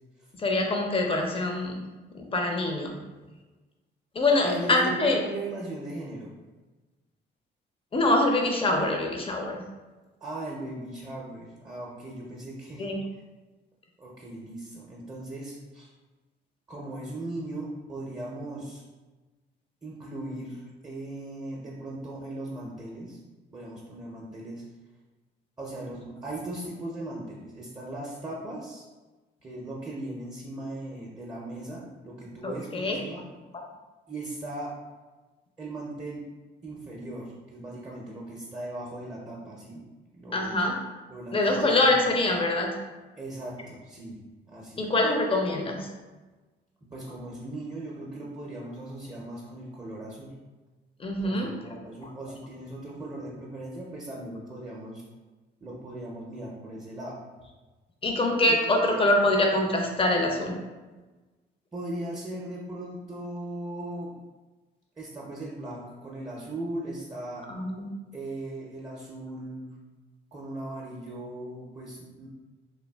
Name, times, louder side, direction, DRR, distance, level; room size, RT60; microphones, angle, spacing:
voice 1, 0.4-1.8 2.1-2.9 4.1-5.2 7.9-9.6 12.8-13.0 32.4-33.0 40.3-40.8 41.3-42.7 44.8-45.9 51.0-51.7 58.0-60.6 67.5-67.9, left 2 dB, 25° left, 2 dB, 0.5 m, -24 dB
voice 2, 4.4-6.3 10.2-12.9 14.0-15.9 16.7-18.8 19.8-23.2 23.5-24.6 25.6-28.8 29.4-33.2 34.1-34.7 35.6-36.2 36.6-39.8 40.1-40.7 41.1-42.1 43.2-44.2 44.5-44.9 46.9-50.3 51.2-55.0 55.6-57.2 58.5-58.6 61.7-64.1 65.0-67.4 68.1-69.7 70.3-72.3, right 1 dB, 20° right, -4 dB, 0.5 m, -38 dB
3.2 x 2.3 x 2.2 m, 1.2 s
cardioid pair, 90°, 20 cm